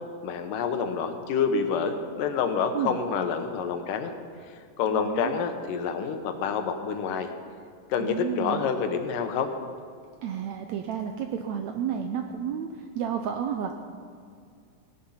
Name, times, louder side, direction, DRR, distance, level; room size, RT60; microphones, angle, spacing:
voice 1, 0.2-4.1 4.8-7.3 7.9-9.5, left 6 dB, 75° left, 7 dB, 2.6 m, -27 dB
voice 2, 4.9-5.3 8.0-8.7 10.2-13.7, right 8 dB, 80° right, 5 dB, 1.6 m, -31 dB
17.0 x 10.5 x 5.7 m, 2.3 s
omnidirectional pair, 3.9 m